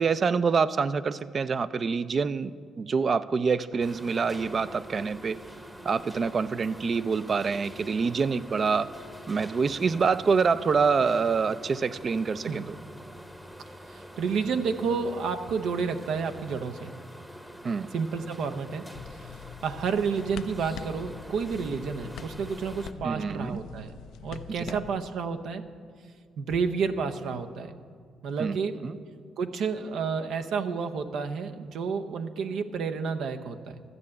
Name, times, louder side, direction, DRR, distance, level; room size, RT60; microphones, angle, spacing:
voice 1, 0.0-5.4 5.8-8.9 9.3-12.8 17.6-17.9 23.0-23.6 24.6-24.8 28.4-29.0, right 5 dB, 45° right, 15 dB, 0.4 m, -26 dB
sound 1, 3.8-22.9, equal, 10° right, 0.9 m, -45 dB
voice 2, 13.9-16.9 17.9-18.8 19.6-24.0 24.2-25.7 26.4-27.8 28.2-28.8 29.4-33.8, right 5 dB, 75° right, 7 dB, 0.7 m, -30 dB
sound 2, 18.9-25.0, left 8 dB, 80° left, 0.4 m, -44 dB
12.5 x 6.5 x 8.5 m, 2.1 s
cardioid pair, 90°, 0 cm